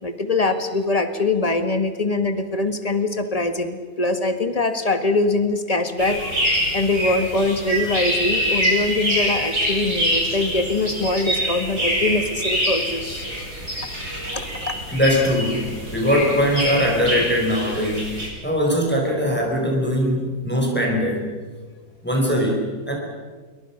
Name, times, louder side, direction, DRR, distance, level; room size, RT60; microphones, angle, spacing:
voice 1, 0.0-6.2 6.7-13.3 14.3-14.8, left 2 dB, 25° left, 8 dB, 1.7 m, -23 dB
sound 1, 6.0-18.3, equal, 85° right, 8.3 m, -25 dB
voice 2, 14.9-21.3 22.0-22.9, equal, 5° left, 0 dB, 5.0 m, -21 dB
28.0 x 23.0 x 5.9 m, 1.4 s
omnidirectional pair, 1.7 m